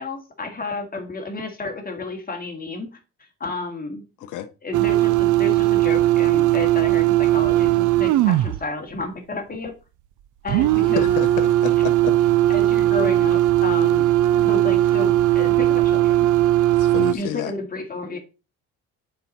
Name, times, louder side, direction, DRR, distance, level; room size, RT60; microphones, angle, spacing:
voice 1, 0.0-2.9 3.2-4.0 4.6-9.7 10.4-11.1 12.5-14.1 14.3-16.3 17.1-18.2, left 3 dB, 30° left, 2.2 m, -31 dB
voice 2, 4.2-4.5 10.9-12.2 16.8-17.5, left 11 dB, 85° left, 0.7 m, -29 dB
sound 1, 4.7-8.6 10.5-17.1, right 14 dB, 85° right, 0.5 m, -18 dB
9.1 x 4.7 x 4.1 m
cardioid pair, 90°, 30 cm